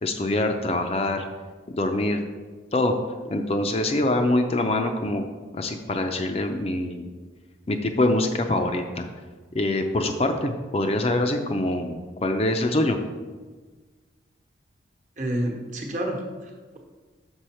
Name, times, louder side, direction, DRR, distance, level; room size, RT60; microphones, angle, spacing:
voice 1, 0.0-1.2 1.7-2.2 2.7-2.9 3.2-5.2 5.5-7.1 7.7-9.1 9.5-13.0, left 1 dB, 30° left, 5 dB, 0.5 m, -24 dB
voice 2, 15.2-16.8, right 1 dB, 40° right, 0 dB, 1.1 m, -29 dB
6.3 x 5.9 x 4.4 m, 1.4 s
head